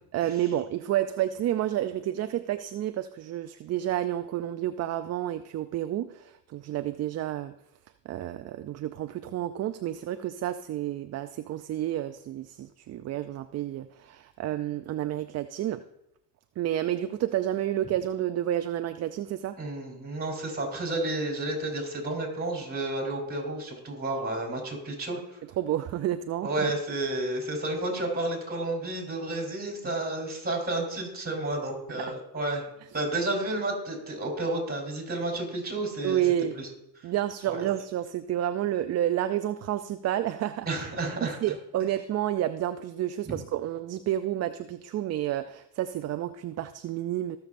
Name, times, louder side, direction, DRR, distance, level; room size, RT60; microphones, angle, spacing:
voice 1, 0.1-7.5 8.1-15.8 16.6-19.6 25.6-26.7 36.0-36.6 37.0-40.7 41.4-47.4, right 12 dB, 35° right, 10 dB, 0.4 m, -30 dB
voice 2, 19.6-25.4 26.4-32.6 32.9-36.2 36.5-36.7 37.5-37.7 40.7-41.4 43.3-43.4, right 2 dB, 20° right, 0 dB, 4.0 m, -31 dB
19.5 x 6.8 x 2.6 m, 0.82 s
supercardioid pair, 85°, 47 cm